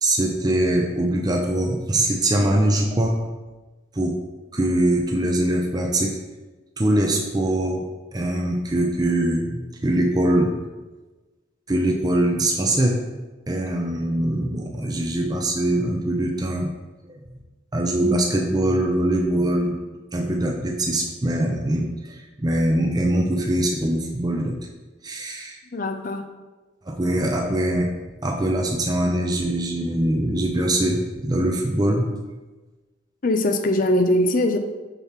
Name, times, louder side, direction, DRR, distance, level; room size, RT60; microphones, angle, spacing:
voice 1, 0.0-3.1 3.9-4.2 4.5-6.1 6.8-7.8 8.1-10.5 11.7-13.0 13.5-16.7 17.1-17.2 17.7-19.8 20.1-24.5 25.0-25.6 26.9-27.9 28.2-32.0, right 1 dB, 20° right, 1 dB, 0.6 m, -22 dB
voice 2, 25.7-26.2 33.2-34.6, left 1 dB, 45° left, 7 dB, 0.5 m, -21 dB
6.8 x 3.0 x 5.7 m, 1.2 s
head